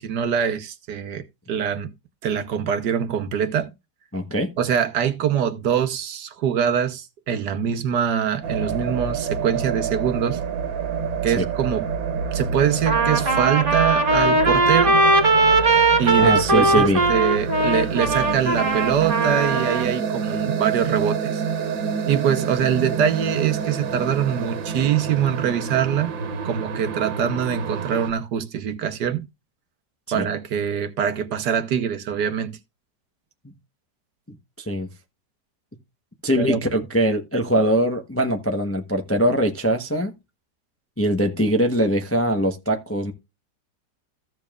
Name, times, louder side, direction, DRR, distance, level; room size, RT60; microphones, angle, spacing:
voice 1, 0.0-1.9 2.2-3.7 4.6-10.4 11.2-11.9 12.3-15.0 16.0-21.4 22.1-26.1 26.4-29.3 30.1-32.6 36.4-36.6, right 8 dB, 65° right, 1.4 m, -23 dB
voice 2, 4.1-4.5 11.4-11.5 16.2-17.0 30.1-30.3 34.6-34.9 36.2-40.1 41.0-43.1, right 1 dB, 10° left, 0.6 m, -22 dB
sound 1, 8.4-28.1, right 6 dB, 90° right, 1.9 m, -28 dB
Trumpet, 12.9-19.9, right 2 dB, 30° right, 1.9 m, -19 dB
15.0 x 7.0 x 2.4 m
omnidirectional pair, 2.0 m